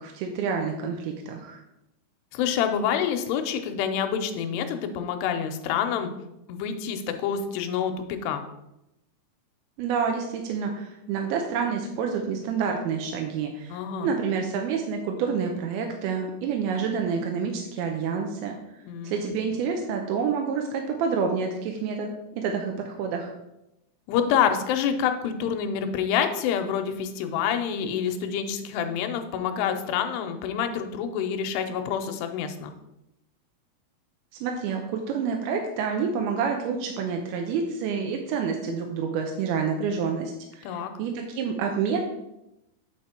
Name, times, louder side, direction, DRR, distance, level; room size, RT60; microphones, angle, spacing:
voice 1, 0.0-1.6 9.8-18.6 19.0-23.3 34.4-42.0, right 6 dB, 80° right, 2 dB, 2.4 m, -28 dB
voice 2, 2.3-6.1 6.5-8.4 13.7-14.1 18.9-19.4 24.1-32.7 40.6-40.9, left 8 dB, 85° left, 7 dB, 2.7 m, -27 dB
8.3 x 4.5 x 4.3 m, 0.89 s
omnidirectional pair, 4.8 m